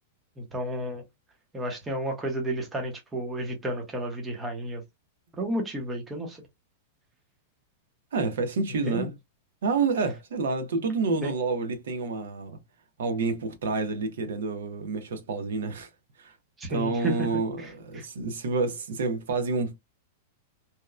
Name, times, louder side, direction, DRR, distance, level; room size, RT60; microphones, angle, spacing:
voice 1, 0.4-1.0 1.5-4.8 5.4-6.4 8.9-9.1 11.2-11.3 16.6-18.0, right 1 dB, 10° right, 0.7 m, -32 dB
voice 2, 8.1-9.1 9.6-12.6 13.0-15.9 16.2-16.3 16.7-19.8, right 4 dB, 85° right, 0.9 m, -28 dB
2.9 x 2.1 x 2.3 m
supercardioid pair, 170°, 0 cm